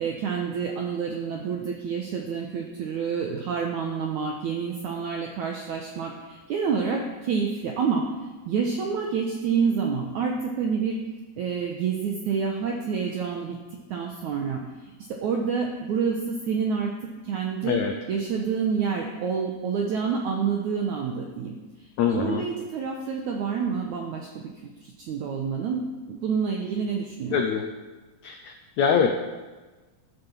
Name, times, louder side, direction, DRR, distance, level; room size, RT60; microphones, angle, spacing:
voice 1, 0.0-8.0 8.5-11.0 11.4-13.6 13.9-14.7 15.2-16.9 17.2-17.8 18.1-21.6 22.1-24.5 24.8-25.8 26.1-27.4, right 6 dB, 65° right, 1 dB, 2.1 m, -28 dB
voice 2, 22.0-22.4 27.3-27.6 28.2-29.1, left 7 dB, 75° left, 4 dB, 1.7 m, -24 dB
13.0 x 9.7 x 7.1 m, 1.2 s
omnidirectional pair, 4.4 m